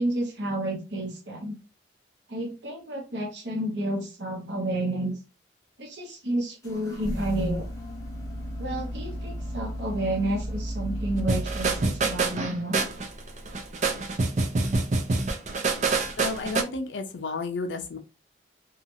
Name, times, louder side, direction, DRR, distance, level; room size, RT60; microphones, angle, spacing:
voice 1, 0.0-1.6 2.3-5.2 5.8-7.7 8.6-12.8, right 1 dB, 70° right, 2 dB, 0.9 m, -30 dB
sound 1, 6.6-12.5, equal, 20° left, 0.8 m, -34 dB
sound 2, 11.3-16.6, right 3 dB, 40° right, 0.4 m, -26 dB
voice 2, 16.2-18.0, left 3 dB, 80° left, 6 dB, 0.5 m, -32 dB
2.9 x 2.4 x 2.6 m, 0.32 s
head